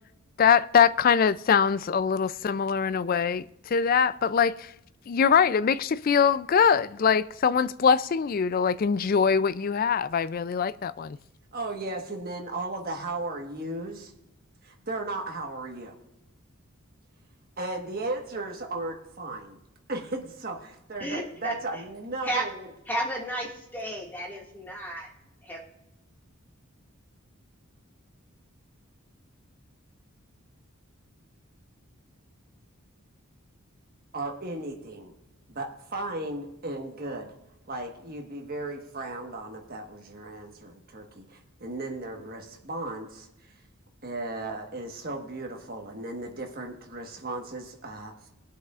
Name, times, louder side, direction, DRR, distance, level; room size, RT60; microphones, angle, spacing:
voice 1, 0.4-4.7 5.1-11.2, left 6 dB, 40° left, 0.3 m, -23 dB
voice 2, 11.5-14.1 14.6-15.9 17.6-19.6 19.9-22.7 34.1-35.1 35.5-37.3 37.7-43.6 44.0-48.1, right 2 dB, 45° right, 1.4 m, -36 dB
voice 3, 21.0-21.5 22.2-22.4 22.9-25.1 25.4-25.6, right 1 dB, 10° left, 2.0 m, -32 dB
21.0 x 8.0 x 2.5 m
head